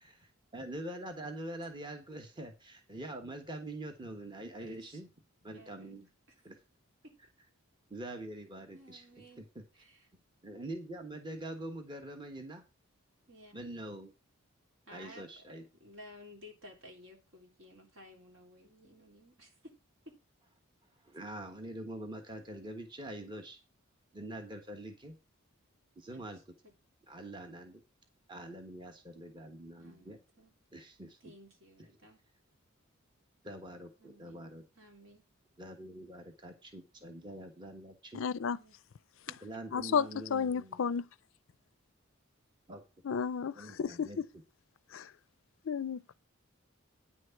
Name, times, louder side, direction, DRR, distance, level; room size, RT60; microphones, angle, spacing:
voice 1, 0.0-5.1 5.4-6.1 6.4-6.6 7.9-9.0 9.5-9.6 10.4-12.6 13.5-14.1 14.9-15.6 21.0-23.6 24.1-25.2 26.0-26.4 27.1-27.8 28.3-30.2 30.7-31.2 33.4-34.6 35.6-38.2 39.4-40.8 42.7-42.8 43.5-44.2, right 1 dB, 20° right, 1.3 m, -44 dB
voice 2, 4.6-5.0 5.5-6.0 6.3-6.4 7.0-7.2 8.7-9.4 9.7-10.1 13.3-13.7 14.9-15.3 15.5-19.7 20.1-20.2 26.1-26.3 26.6-26.7 29.8-30.5 31.2-32.2 34.0-34.4 34.8-35.2 37.0-37.2 38.4-38.7 39.3-39.4, left 1 dB, 60° right, 3.4 m, -55 dB
voice 3, 38.1-38.6 39.7-41.1 43.0-44.3 44.9-45.1 45.7-46.1, left 6 dB, 65° left, 0.4 m, -32 dB
9.7 x 6.3 x 5.8 m
head